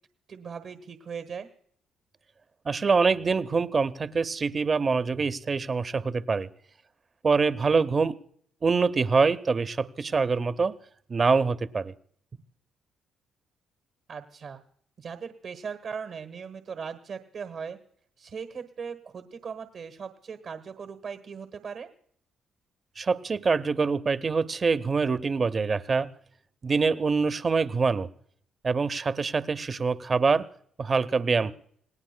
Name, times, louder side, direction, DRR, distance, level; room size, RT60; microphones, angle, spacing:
voice 1, 0.3-1.5 7.7-8.0 14.1-14.6 15.0-17.8 18.2-21.9 31.4-31.5, right 6 dB, 55° right, 9 dB, 1.3 m, -39 dB
voice 2, 2.7-6.5 7.2-8.1 8.6-10.7 11.1-11.9 23.0-26.1 26.6-28.1 28.6-30.5 30.8-31.5, right 4 dB, 35° right, 13 dB, 0.7 m, -25 dB
27.5 x 18.5 x 2.2 m, 0.63 s
cardioid pair, 90°, 0 cm